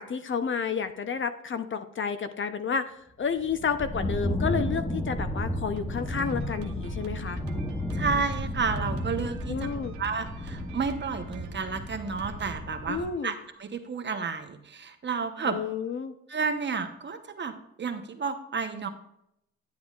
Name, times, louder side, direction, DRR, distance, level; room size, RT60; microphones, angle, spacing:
voice 1, 0.0-7.4 9.5-9.9 12.9-13.3 15.4-16.1, left 6 dB, 40° left, 10 dB, 0.7 m, -31 dB
sound 1, 3.4-13.1, left 1 dB, 5° left, 0.9 m, -33 dB
Drum kit, 5.8-13.6, right 6 dB, 75° right, 1.0 m, -47 dB
voice 2, 7.9-9.6 10.0-15.6 16.3-17.5 17.8-18.9, right 5 dB, 35° right, 7 dB, 1.0 m, -31 dB
10.5 x 7.8 x 2.4 m, 0.77 s
cardioid pair, 90°, 30 cm